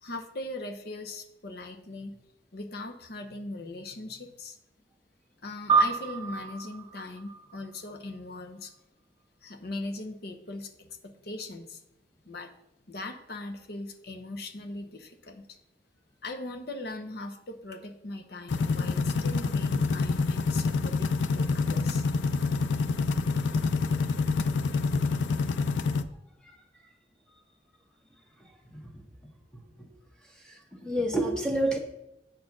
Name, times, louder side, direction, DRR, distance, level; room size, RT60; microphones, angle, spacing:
voice 1, 0.0-2.2 2.5-4.6 5.4-8.7 9.4-11.8 12.2-12.5 12.9-15.5 16.2-22.0, left 2 dB, 60° left, 5 dB, 0.9 m, -40 dB
sound 1, 5.7-8.4, right 4 dB, 25° right, 0.6 m, -29 dB
sound 2, 18.5-26.0, left 4 dB, 90° left, 0.5 m, -27 dB
voice 2, 28.4-28.9 29.8-29.9 30.4-31.8, right 1 dB, 5° left, 1 dB, 1.1 m, -29 dB
8.0 x 4.4 x 6.0 m, 0.86 s
head